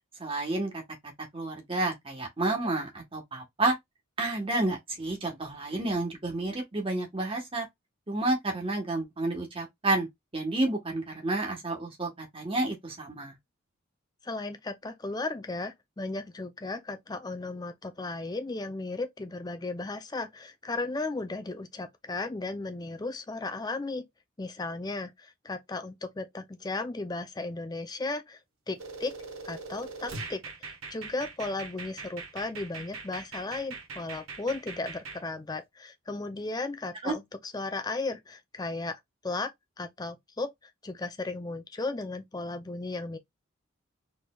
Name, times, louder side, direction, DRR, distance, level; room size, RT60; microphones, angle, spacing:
voice 1, 0.2-0.8 1.3-3.7 4.2-7.7 8.1-10.1 10.3-13.3 37.0-37.1, right 2 dB, 25° right, 1.2 m, -30 dB
voice 2, 14.2-24.0 24.4-28.4 28.7-29.1 29.4-39.5 39.8-40.5 40.8-43.2, left 3 dB, 20° left, 0.5 m, -35 dB
punch remake, 28.8-35.2, right 4 dB, 85° right, 1.2 m, -41 dB
4.2 x 3.2 x 2.3 m
head